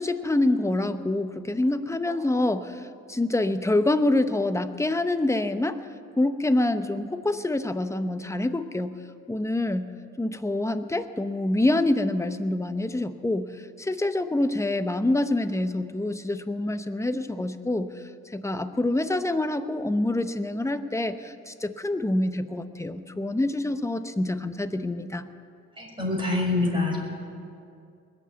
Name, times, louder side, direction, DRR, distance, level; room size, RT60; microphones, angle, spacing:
voice 1, 0.0-5.8 6.2-9.0 9.3-9.9 10.2-25.3, left 2 dB, 10° left, 9 dB, 0.8 m, -26 dB
voice 2, 25.8-27.0, left 2 dB, 15° right, -1 dB, 5.3 m, -25 dB
20.5 x 7.6 x 9.2 m, 2.4 s
cardioid pair, 90°, 30 cm